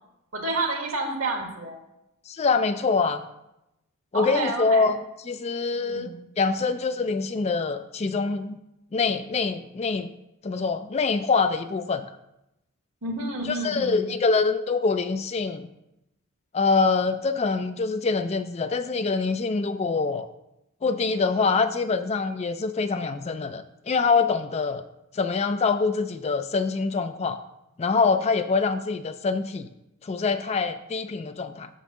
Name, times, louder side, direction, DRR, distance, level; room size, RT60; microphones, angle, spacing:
voice 1, 0.3-1.8 4.1-4.9 5.9-6.2 13.0-14.0, right 2 dB, 65° right, 2 dB, 1.6 m, -29 dB
voice 2, 2.3-3.2 4.1-5.0 5.2-6.1 6.4-8.6 8.9-10.1 10.4-12.0 13.4-15.7 16.5-20.3 20.8-24.8 25.1-27.4 27.8-29.7 30.0-31.7, left 4 dB, 30° left, 10 dB, 0.3 m, -25 dB
6.7 x 5.3 x 6.2 m, 0.88 s
head